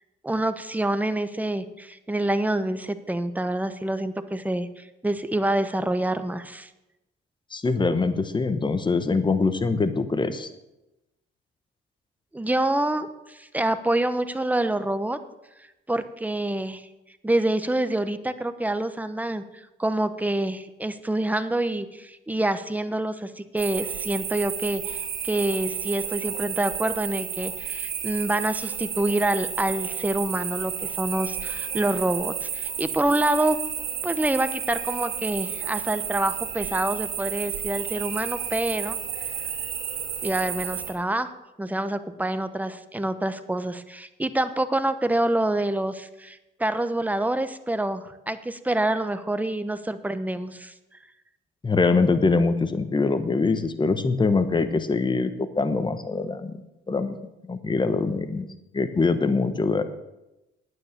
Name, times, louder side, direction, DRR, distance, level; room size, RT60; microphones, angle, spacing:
voice 1, 0.2-6.7 12.3-15.2 15.9-16.9 17.2-19.4 19.8-33.6 34.0-39.0 40.2-41.3 41.6-50.7, right 1 dB, 10° right, 11 dB, 0.9 m, -27 dB
voice 2, 7.5-10.5 51.6-56.6 56.9-57.2 57.5-58.5 58.7-59.8, left 3 dB, 25° left, 10 dB, 1.1 m, -23 dB
sound 1, 23.6-40.9, right 8 dB, 80° right, 2.3 m, -32 dB
9.7 x 9.2 x 7.4 m, 0.96 s
cardioid pair, 90°, 20 cm